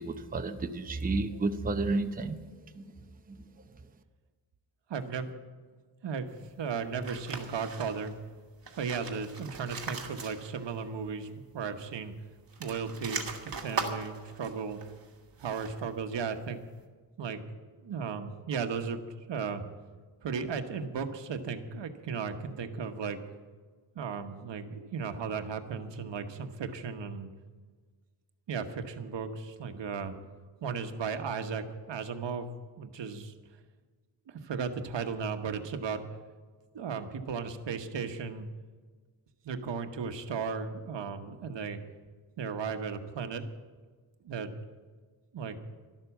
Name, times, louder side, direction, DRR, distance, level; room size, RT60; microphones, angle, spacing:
voice 1, 0.0-2.4 2.8-3.0 3.3-3.4, right 3 dB, 20° right, 7 dB, 0.7 m, -31 dB
voice 2, 4.9-5.3 6.0-6.3 6.6-8.1 8.8-12.1 12.6-14.8 15.4-16.6 17.2-17.5 17.8-19.0 19.3-19.6 20.2-23.2 23.9-27.3 28.5-30.1 30.6-32.5 32.8-33.3 34.3-36.1 36.7-38.5 39.4-41.8 42.4-43.4 44.2-44.5 45.3-45.6, right 5 dB, 75° right, 7 dB, 1.2 m, -35 dB
sound 1, 7.0-8.2 8.6-10.8 11.1-11.2 12.4-15.9, right 5 dB, 50° right, 1.9 m, -40 dB
12.5 x 12.0 x 7.2 m, 1.5 s
wide cardioid pair, 105°, 44 cm